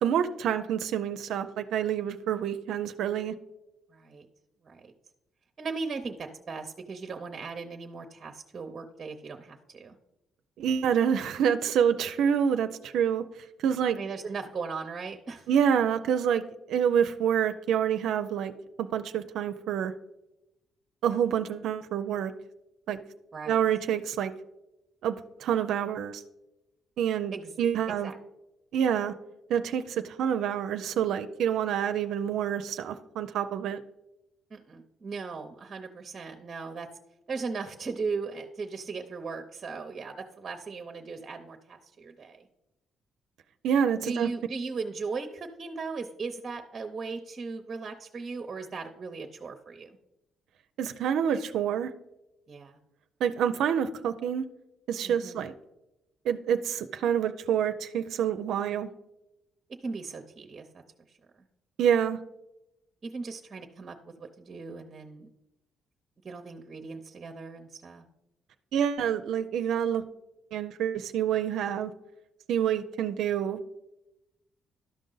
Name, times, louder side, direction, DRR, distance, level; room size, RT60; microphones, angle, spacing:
voice 1, 0.0-3.3 10.6-13.2 13.6-14.0 15.5-16.4 16.7-18.5 18.8-19.9 21.0-22.3 22.9-23.0 23.5-24.3 25.0-25.1 25.4-26.2 27.0-28.1 28.7-29.1 29.5-33.8 43.6-44.3 50.8-51.9 53.2-54.4 54.9-55.5 56.2-58.9 61.8-62.2 68.7-70.0 70.5-71.9 72.5-73.6, right 8 dB, 80° right, 8 dB, 0.4 m, -27 dB
voice 2, 3.9-4.3 4.6-4.9 5.6-10.0 13.7-15.5 23.3-23.6 27.3-27.5 28.0-28.2 34.5-36.9 37.3-42.5 44.0-50.0 52.5-52.8 55.0-55.4 59.8-60.8 61.1-61.2 63.0-65.3 66.2-68.0, right 4 dB, 40° right, 5 dB, 0.7 m, -38 dB
12.5 x 5.2 x 3.9 m, 0.92 s
cardioid pair, 90°, 0 cm